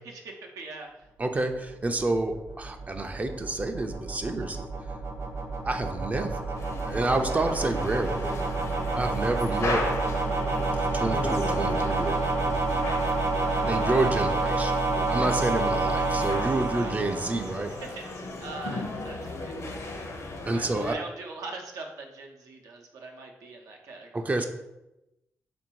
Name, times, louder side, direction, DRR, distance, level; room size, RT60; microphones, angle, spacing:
voice 1, 0.0-0.9 9.3-9.6 16.7-17.0 17.8-18.0 18.4-20.1 20.5-24.5, right 3 dB, 90° right, 1 dB, 0.6 m, -42 dB
voice 2, 1.2-4.7 5.6-6.5 6.9-8.3 8.9-9.8 10.7-12.4 13.6-14.8 15.1-17.7 20.5-21.0 24.1-24.5, right 2 dB, 25° right, 5 dB, 0.4 m, -29 dB
sound 1, 1.7-17.9, right 3 dB, 50° right, 0.9 m, -29 dB
sound 2, 6.6-20.9, left 2 dB, 60° left, 0.6 m, -36 dB
3.4 x 2.6 x 4.5 m, 0.94 s
cardioid pair, 85°, 6 cm